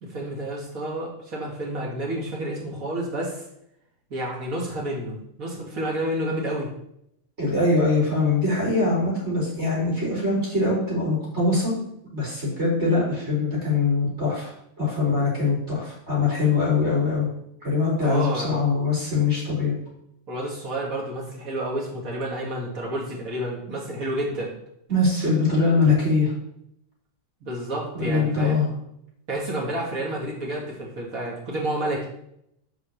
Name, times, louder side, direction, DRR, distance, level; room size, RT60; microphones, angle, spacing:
voice 1, 0.0-3.4 4.1-6.7 18.0-18.6 20.3-24.5 27.4-28.7 29.3-32.1, right 1 dB, 85° right, -3 dB, 2.6 m, -30 dB
voice 2, 7.4-11.7 12.1-14.5 14.8-17.3 17.6-19.8 24.9-26.3 27.9-28.7, left 3 dB, 55° right, -6 dB, 3.9 m, -22 dB
6.5 x 5.0 x 6.4 m, 0.75 s
omnidirectional pair, 1.4 m